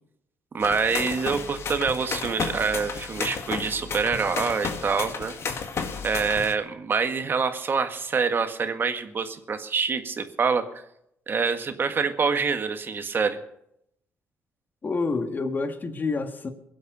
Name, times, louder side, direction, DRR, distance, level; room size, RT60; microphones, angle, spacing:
voice 1, 0.5-5.3 6.0-10.6 11.3-13.4, right 5 dB, 40° right, 8 dB, 1.7 m, -26 dB
sound 1, 0.6-6.5, left 5 dB, 55° left, 1.9 m, -32 dB
voice 2, 14.8-16.5, left 3 dB, 35° left, 6 dB, 1.8 m, -28 dB
22.0 x 7.9 x 6.8 m, 0.79 s
cardioid pair, 80°, 5 cm